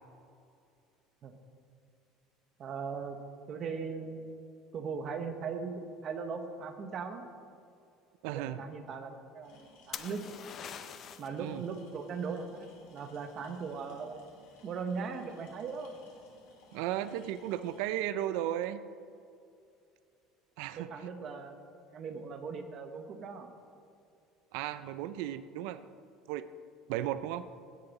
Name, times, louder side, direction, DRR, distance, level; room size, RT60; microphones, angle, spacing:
voice 1, 2.6-3.2 3.5-4.3 4.7-7.2 8.3-10.2 11.2-14.2 14.6-15.9 20.8-21.6 21.9-23.5, right 5 dB, 30° right, 7 dB, 0.8 m, -39 dB
voice 2, 8.2-8.6 11.4-11.6 16.7-18.8 20.6-20.9 24.5-25.9 26.3-26.5 26.9-27.5, right 12 dB, 70° right, 13 dB, 0.4 m, -35 dB
sound 1, 9.4-17.8, left 2 dB, 75° left, 2.9 m, -60 dB
sound 2, 9.9-11.4 15.1-15.5, left 8 dB, 30° left, 0.4 m, -43 dB
16.5 x 6.8 x 4.1 m, 2.5 s
cardioid pair, 180°, 0 cm